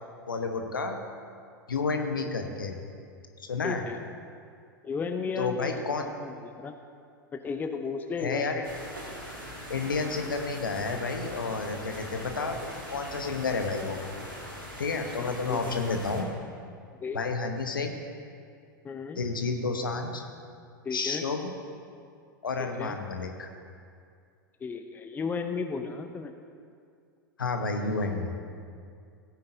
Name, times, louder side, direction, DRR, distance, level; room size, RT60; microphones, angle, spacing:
voice 1, 0.3-1.0 1.7-2.7 3.4-3.8 5.4-6.1 8.2-8.6 9.7-14.0 14.8-16.3 17.1-17.9 19.2-20.2 20.9-21.5 22.4-23.5 27.4-28.4, left 4 dB, 75° left, 4 dB, 1.0 m, -30 dB
voice 2, 3.6-4.0 4.8-6.7 7.3-8.4 15.2-15.7 17.0-17.2 18.8-19.2 20.8-21.2 22.6-23.0 24.6-26.3, left 5 dB, 15° left, 7 dB, 0.6 m, -34 dB
sound 1, 8.6-16.2, equal, 90° right, 2.3 m, -42 dB
16.0 x 9.4 x 2.7 m, 2.3 s
figure-of-eight pair, 90°, 11 cm